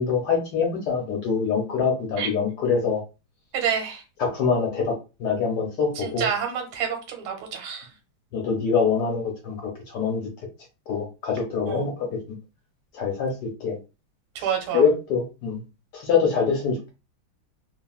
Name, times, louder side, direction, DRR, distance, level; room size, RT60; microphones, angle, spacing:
voice 1, 0.0-3.0 4.2-4.9 5.2-6.3 8.3-9.6 9.9-10.3 10.9-12.1 12.9-13.8 14.7-15.6 15.9-16.8, left 5 dB, 65° left, 1 dB, 1.1 m, -24 dB
voice 2, 3.5-4.0 5.9-7.9 11.7-11.8 14.3-14.8, right 7 dB, 85° right, 4 dB, 1.7 m, -28 dB
3.3 x 2.2 x 2.3 m, 0.29 s
omnidirectional pair, 2.3 m